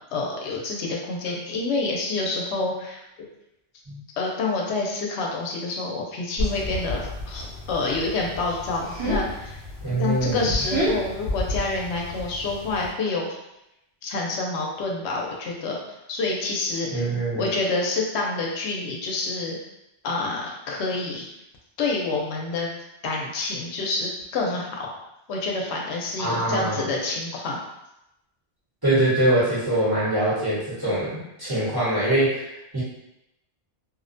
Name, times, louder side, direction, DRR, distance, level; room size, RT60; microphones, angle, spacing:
voice 1, 0.1-3.0 4.2-7.0 7.3-9.6 10.0-13.4 14.0-15.8 16.1-17.0 17.4-19.6 20.0-21.3 21.8-22.7 23.0-24.9 25.3-27.6, left 3 dB, 80° left, -1 dB, 0.8 m, -27 dB
sound 1, 6.4-12.9, equal, 65° right, 1.3 m, -30 dB
voice 2, 9.8-10.5 16.9-17.5 26.2-26.8 28.8-32.4 32.7-32.8, right 1 dB, 20° right, -11 dB, 0.8 m, -23 dB
2.5 x 2.1 x 2.5 m, 0.87 s
omnidirectional pair, 1.1 m